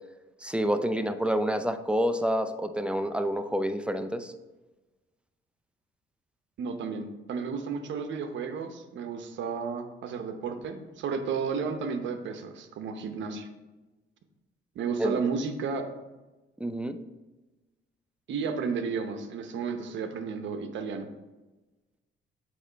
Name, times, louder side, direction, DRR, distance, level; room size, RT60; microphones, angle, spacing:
voice 1, 0.4-4.3 15.0-15.2 16.6-17.0, equal, 5° right, 9 dB, 0.4 m, -28 dB
voice 2, 6.6-13.5 14.8-15.9 18.3-21.1, right 5 dB, 70° right, 6 dB, 0.8 m, -32 dB
7.9 x 3.1 x 4.5 m, 1.1 s
cardioid pair, 90°, 20 cm